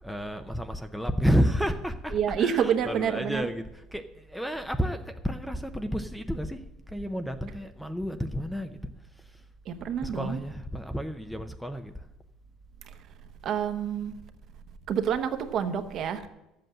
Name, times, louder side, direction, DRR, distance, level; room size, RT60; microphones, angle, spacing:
voice 1, 0.0-6.6 6.9-8.8 10.0-11.9, equal, ahead, 8 dB, 0.5 m, -30 dB
voice 2, 2.1-3.5 9.7-10.4 12.9-13.0 13.4-14.2 14.9-16.3, right 8 dB, 45° right, 8 dB, 1.0 m, -28 dB
12.0 x 7.8 x 7.6 m, 0.95 s
cardioid pair, 160°, 0 cm